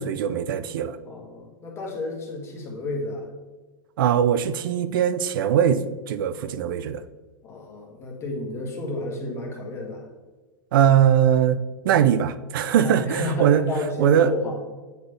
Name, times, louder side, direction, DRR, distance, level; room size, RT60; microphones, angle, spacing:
voice 1, 0.0-1.0 4.0-7.0 10.7-11.6 11.8-13.6 14.0-14.3, right 9 dB, 75° right, 12 dB, 0.4 m, -21 dB
voice 2, 1.0-3.3 7.4-10.1 12.8-14.6, left 2 dB, 25° left, 0 dB, 1.4 m, -31 dB
8.0 x 3.8 x 3.3 m, 1.3 s
supercardioid pair, 135°, 11 cm